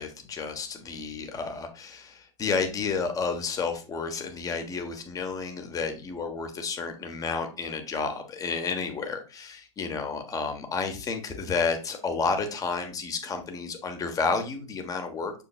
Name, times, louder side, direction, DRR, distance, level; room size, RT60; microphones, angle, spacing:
voice 1, 0.0-15.3, left 5 dB, 20° left, 6 dB, 1.4 m, -31 dB
6.9 x 6.5 x 2.4 m, 0.33 s
figure-of-eight pair, 100°, 18 cm